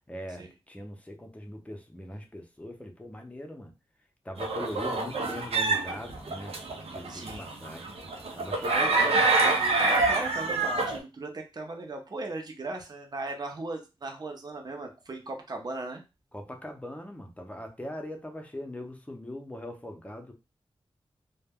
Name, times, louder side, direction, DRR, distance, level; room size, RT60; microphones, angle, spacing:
voice 1, 0.1-3.7 4.2-6.6 6.9-7.9 8.3-9.2 16.3-20.3, left 1 dB, 15° left, 3 dB, 0.6 m, -41 dB
sound 1, 4.4-11.0, right 3 dB, 90° right, 0.5 m, -26 dB
voice 2, 7.1-7.4 8.6-16.0, right 2 dB, 45° right, 2 dB, 0.6 m, -37 dB
2.2 x 2.1 x 3.4 m, 0.27 s
wide cardioid pair, 80°, 10 cm